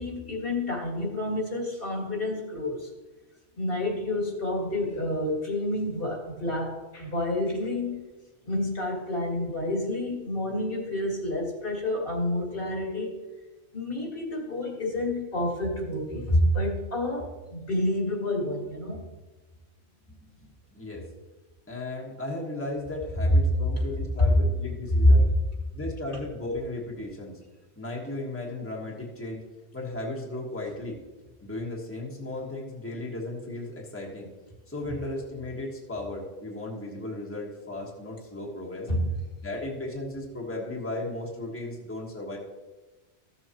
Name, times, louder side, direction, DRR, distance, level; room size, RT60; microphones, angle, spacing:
voice 1, 0.0-2.9 3.6-8.0 8.4-13.1 13.7-19.0 23.8-23.9 24.2-24.3 34.9-35.0 38.9-39.1, left 1 dB, 55° left, -1 dB, 2.2 m, -29 dB
voice 2, 20.7-21.0 21.7-25.2 25.7-27.4 27.8-31.0 31.4-34.3 34.7-38.9 39.4-42.4, left 2 dB, 10° left, -3 dB, 1.4 m, -35 dB
14.5 x 7.1 x 3.0 m, 1.2 s
omnidirectional pair, 1.1 m